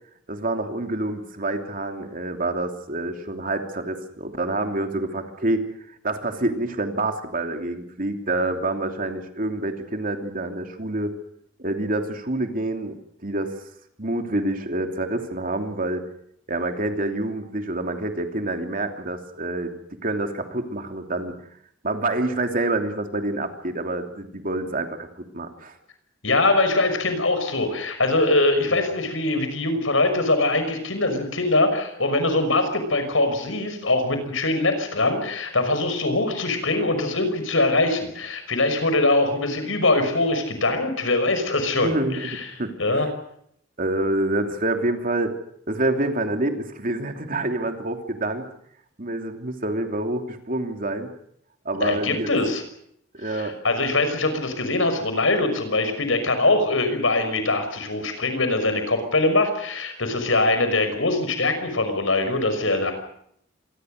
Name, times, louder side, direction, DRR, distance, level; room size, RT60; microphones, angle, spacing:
voice 1, 0.3-5.6 6.0-11.1 11.6-13.0 13.2-13.5 14.0-16.0 16.5-19.7 20.0-21.4 21.8-25.7 41.7-43.1 43.8-45.3 45.7-48.5 49.0-51.1 51.6-52.3 53.1-53.5, right 2 dB, 45° right, 5 dB, 3.0 m, -27 dB
voice 2, 26.2-42.5 42.8-43.1 51.7-52.6 53.2-62.9, left 2 dB, 85° left, 8 dB, 5.8 m, -22 dB
26.0 x 20.5 x 6.6 m, 0.71 s
head